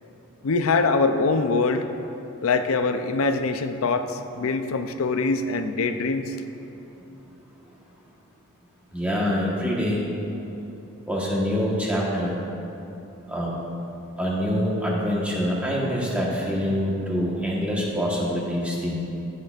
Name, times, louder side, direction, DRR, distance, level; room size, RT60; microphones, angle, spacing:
voice 1, 0.4-1.9 2.4-6.3, left 3 dB, 75° left, 8 dB, 0.5 m, -23 dB
voice 2, 8.9-10.1 11.1-12.4 13.3-13.5 14.2-19.0, equal, 5° right, -5 dB, 1.3 m, -25 dB
17.0 x 6.5 x 2.5 m, 2.9 s
head